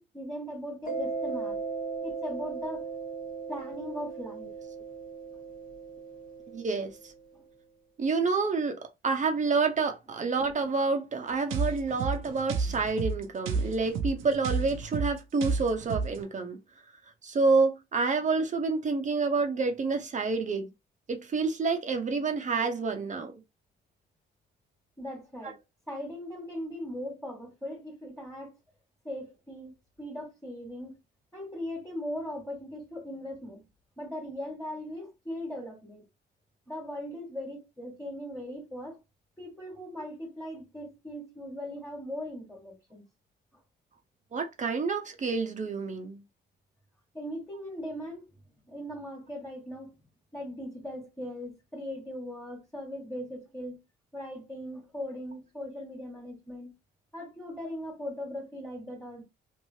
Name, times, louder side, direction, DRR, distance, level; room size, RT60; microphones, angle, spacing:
voice 1, 0.0-1.6 2.0-2.9 3.5-4.5 7.3-7.4 25.0-25.6 25.9-28.5 29.0-31.0 31.3-33.6 34.0-36.0 36.7-39.0 39.4-43.0 47.1-48.2 48.7-49.9 50.3-53.8 54.1-56.7 57.1-59.2, left 1 dB, ahead, 1.4 m, -39 dB
Mallet percussion, 0.9-7.2, right 4 dB, 45° left, 1.1 m, -37 dB
voice 2, 6.5-6.9 8.0-8.7 9.0-16.6 17.2-20.7 21.1-23.3 44.3-46.2, right 4 dB, 40° right, 0.6 m, -28 dB
sound 1, 11.5-16.2, right 5 dB, 90° right, 0.6 m, -31 dB
3.1 x 2.6 x 2.7 m
cardioid pair, 90°, 20 cm